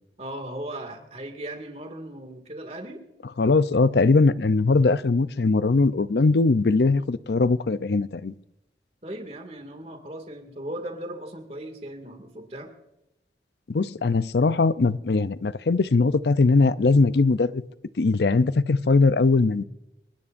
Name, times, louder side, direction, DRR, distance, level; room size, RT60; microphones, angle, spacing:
voice 1, 0.2-3.0 9.0-12.7, right 1 dB, 35° right, 6 dB, 2.2 m, -37 dB
voice 2, 3.4-8.3 13.7-17.6 18.0-19.6, left 3 dB, 70° left, 15 dB, 0.5 m, -20 dB
30.0 x 13.0 x 2.6 m, 0.91 s
head